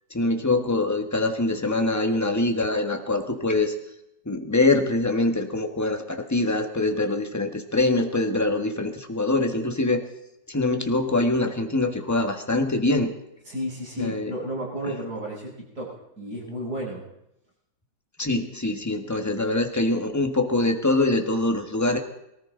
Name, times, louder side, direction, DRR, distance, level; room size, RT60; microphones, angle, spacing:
voice 1, 0.1-3.7 4.2-10.0 10.5-13.1 14.0-14.3 18.2-22.0, left 2 dB, 10° left, 5 dB, 1.3 m, -24 dB
voice 2, 13.5-17.0, equal, 45° right, -5 dB, 8.6 m, -32 dB
23.0 x 14.0 x 3.9 m, 0.86 s
omnidirectional pair, 2.2 m